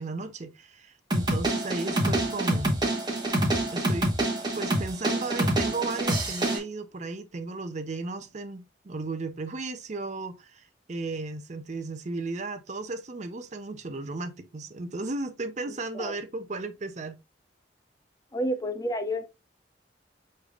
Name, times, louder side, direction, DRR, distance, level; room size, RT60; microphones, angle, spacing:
voice 1, 0.0-2.8 3.7-4.2 4.5-17.2, right 3 dB, 40° right, 0.5 m, -35 dB
sound 1, 1.1-6.6, right 1 dB, 25° right, 1.0 m, -26 dB
voice 2, 18.3-19.3, equal, 20° left, 0.5 m, -29 dB
6.6 x 3.2 x 2.4 m
head